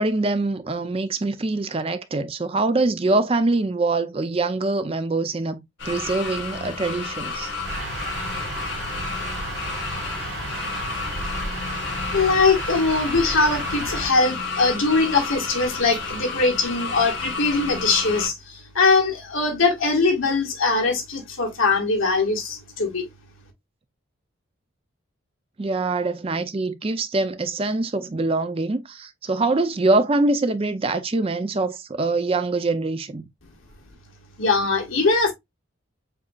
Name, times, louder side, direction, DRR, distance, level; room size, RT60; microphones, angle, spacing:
voice 1, 0.0-5.6 5.8-7.5 25.6-33.2, right 2 dB, 25° right, 0.4 m, -24 dB
sound 1, 5.8-18.3, left 4 dB, 55° left, 1.5 m, -31 dB
sound 2, 7.6-14.1, right 2 dB, 60° right, 1.7 m, -33 dB
voice 2, 12.1-23.1 34.4-35.3, left 3 dB, 75° left, 1.5 m, -21 dB
7.4 x 2.7 x 2.3 m
head